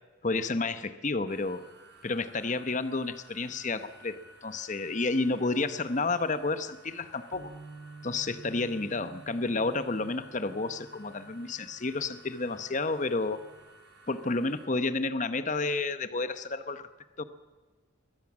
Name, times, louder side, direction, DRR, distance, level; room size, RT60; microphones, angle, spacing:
voice 1, 0.2-1.7 2.0-7.5 8.0-13.4 14.1-16.8 17.2-17.3, left 3 dB, 40° left, 12 dB, 0.9 m, -31 dB
sound 1, 1.3-14.6, right 1 dB, 55° right, 4.7 m, -55 dB
Bass guitar, 7.3-13.6, right 3 dB, 35° right, 1.9 m, -51 dB
22.5 x 17.0 x 7.2 m, 1.4 s
head